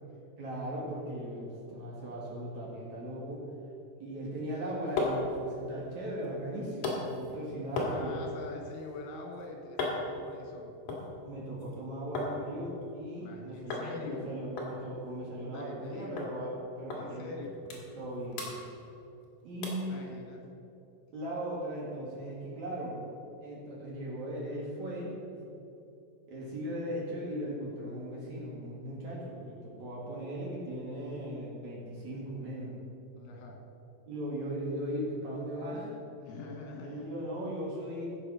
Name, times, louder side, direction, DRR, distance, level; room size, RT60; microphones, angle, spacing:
voice 1, 0.4-3.4 4.0-8.2 11.2-17.3 17.7-18.4 19.4-20.0 21.1-23.0 23.4-25.4 26.3-32.8 34.1-35.9 36.8-38.2, right 1 dB, 50° right, -4 dB, 2.5 m, -38 dB
sound 1, 4.4-12.3 12.7-13.3 13.7-13.9 14.2-14.3 14.6-15.9 16.2-16.3 16.9-17.0 17.4-18.1 18.3-19.2 19.6-19.9 20.4-20.5, left 2 dB, 55° left, 3.0 m, -37 dB
voice 2, 7.7-10.8 13.2-14.3 15.4-16.3 16.9-17.6 19.8-20.5 33.2-33.6 36.2-37.1, left 3 dB, 80° left, 1 dB, 4.4 m, -44 dB
15.0 x 7.4 x 6.1 m, 2.9 s
omnidirectional pair, 5.8 m